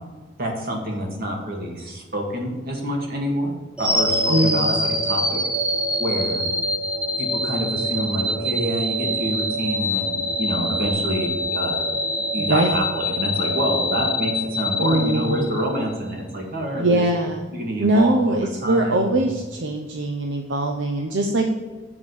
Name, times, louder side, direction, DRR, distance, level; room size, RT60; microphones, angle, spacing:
voice 1, 0.4-4.8 5.0-5.4 6.0-6.5 7.2-11.8 12.3-17.0 17.5-19.2, equal, 55° right, 0 dB, 2.0 m, -27 dB
sound 1, 3.8-15.9, left 1 dB, 5° right, 0.8 m, -25 dB
voice 2, 4.3-4.7 12.4-12.8 14.8-15.5 16.8-17.5 17.8-21.5, right 1 dB, 75° right, 2 dB, 0.8 m, -22 dB
7.3 x 4.9 x 7.1 m, 1.3 s
head